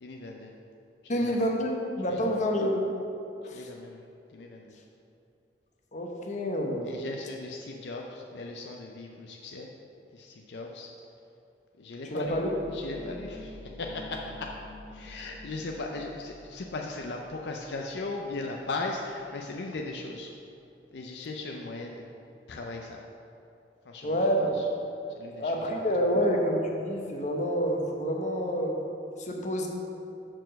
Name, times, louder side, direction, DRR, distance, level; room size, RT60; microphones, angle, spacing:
voice 1, 0.0-0.5 1.0-1.3 2.1-2.3 3.5-4.0 4.3-4.8 6.8-9.7 10.1-10.9 11.8-12.4 12.7-14.5 14.9-20.3 20.9-22.1 22.5-23.0 23.9-24.6 25.2-25.5, left 3 dB, 70° left, 1 dB, 0.5 m, -38 dB
voice 2, 1.1-2.8 3.4-3.7 5.9-6.9 12.1-12.6 24.0-24.6 25.4-28.8 29.2-29.7, equal, 45° left, 1 dB, 0.8 m, -28 dB
sound 1, 12.2-19.0 19.3-19.4, left 1 dB, 10° left, 1.1 m, -49 dB
6.0 x 4.5 x 6.3 m, 2.7 s
head